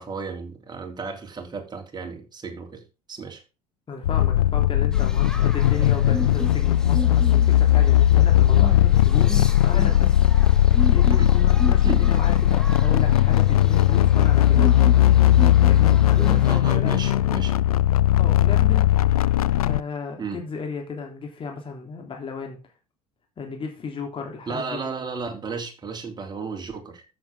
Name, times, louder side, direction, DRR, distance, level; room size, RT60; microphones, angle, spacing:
voice 1, 0.0-2.8 3.1-3.4 11.1-11.3 11.8-12.0 16.4-17.5 20.2-20.4 24.5-27.0, right 4 dB, 20° right, 3.2 m, -33 dB
voice 2, 3.9-10.2 10.9-14.9 15.6-16.9 18.1-18.9 19.6-22.6 23.4-24.8, left 4 dB, 25° left, 3.2 m, -35 dB
Heavy Bass Drone, 4.0-19.8, left 13 dB, 70° left, 0.5 m, -18 dB
sound 1, 4.9-16.6, left 1 dB, 5° left, 1.9 m, -34 dB
13.5 x 7.4 x 3.6 m
figure-of-eight pair, 65°, 19 cm